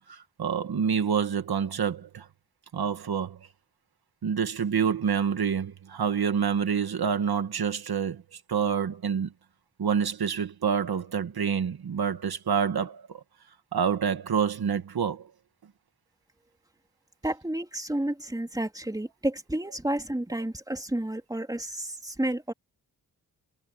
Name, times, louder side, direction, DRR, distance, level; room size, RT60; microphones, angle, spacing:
voice 1, 0.0-2.3 2.7-3.4 4.2-9.3 9.8-13.2 13.7-15.3, right 7 dB, 80° right, 1.9 m, -27 dB
voice 2, 17.2-22.5, right 1 dB, 10° right, 3.2 m, -31 dB
wide cardioid pair, 105°, 37 cm